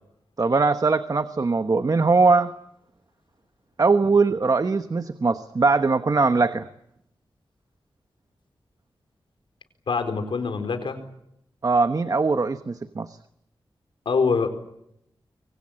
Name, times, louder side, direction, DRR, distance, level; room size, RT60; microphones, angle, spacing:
voice 1, 0.4-2.5 3.8-6.7 11.6-13.2, right 4 dB, 45° right, 10 dB, 1.1 m, -21 dB
voice 2, 9.9-11.0 14.1-14.5, left 5 dB, 85° left, 7 dB, 4.3 m, -24 dB
26.0 x 24.0 x 8.8 m, 0.78 s
wide cardioid pair, 90°, 8 cm